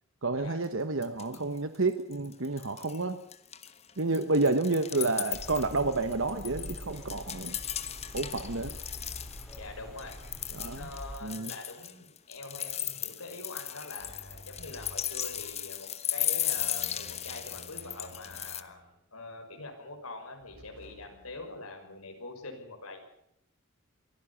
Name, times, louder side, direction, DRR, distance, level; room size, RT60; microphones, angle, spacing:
voice 1, 0.2-3.2 4.0-7.6 8.1-8.8 10.5-10.9 11.2-11.5, right 3 dB, 65° right, 9 dB, 1.2 m, -30 dB
sound 1, 0.6-0.7 1.0-1.6 1.9-3.0 3.3-9.6 10.0-18.6, left 11 dB, 30° left, 1.1 m, -36 dB
sound 2, 5.3-11.2, equal, ahead, 4.1 m, -45 dB
voice 2, 9.6-10.4 10.7-18.8 19.1-23.0, left 2 dB, 90° left, 3 dB, 6.0 m, -44 dB
sound 3, 14.0-15.5 16.4-19.0 20.4-21.6, left 1 dB, 40° right, 8.0 m, -53 dB
23.5 x 16.0 x 7.2 m, 0.77 s
head